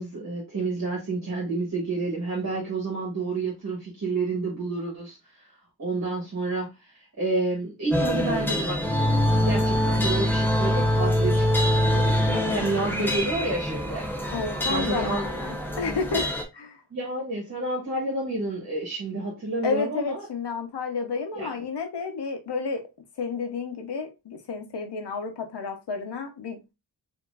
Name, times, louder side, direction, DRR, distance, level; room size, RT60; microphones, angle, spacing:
voice 1, 0.0-5.2 5.8-8.8 9.3-14.1 14.7-15.2 16.9-20.2 21.3-21.5, right 2 dB, 40° right, -3 dB, 1.5 m, -29 dB
sound 1, 7.9-16.4, left 1 dB, 5° left, 0.7 m, -24 dB
voice 2, 12.2-12.6 14.3-16.8 19.6-22.8 23.2-26.7, left 4 dB, 80° left, 6 dB, 1.0 m, -31 dB
4.7 x 2.9 x 2.4 m, 0.24 s
wide cardioid pair, 145°, 40 cm